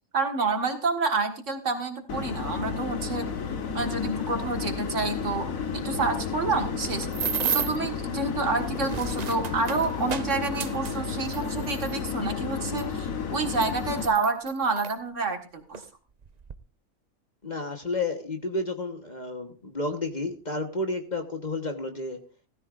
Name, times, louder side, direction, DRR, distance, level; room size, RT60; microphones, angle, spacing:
voice 1, 0.1-3.3 3.7-5.5 5.7-7.1 7.5-15.8, right 3 dB, 65° right, 5 dB, 2.1 m, -28 dB
sound 1, 2.1-14.1, left 6 dB, 80° left, 1.7 m, -32 dB
sound 2, 6.5-7.9 8.6-12.0 12.8-12.9 13.5-15.0 15.7-15.9 16.2-16.6, right 7 dB, 45° right, 0.5 m, -33 dB
voice 2, 17.4-22.2, left 2 dB, 35° left, 5 dB, 1.4 m, -31 dB
16.0 x 14.0 x 2.5 m, 0.37 s
omnidirectional pair, 1.4 m